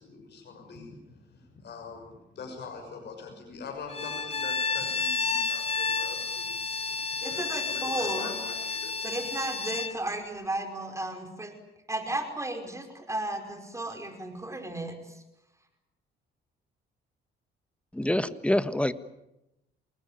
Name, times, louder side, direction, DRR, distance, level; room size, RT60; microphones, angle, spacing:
voice 1, 0.0-6.7 7.2-9.0, left 4 dB, 55° left, 2 dB, 6.4 m, -44 dB
Bowed string instrument, 3.9-10.0, left 4 dB, 30° left, 1.3 m, -31 dB
voice 2, 7.2-8.3 9.0-11.5 11.9-15.2, right 1 dB, 15° right, 5 dB, 5.1 m, -34 dB
voice 3, 17.9-18.9, left 1 dB, 5° left, 12 dB, 1.5 m, -26 dB
28.0 x 20.0 x 9.3 m, 0.90 s
cardioid pair, 90°, 20 cm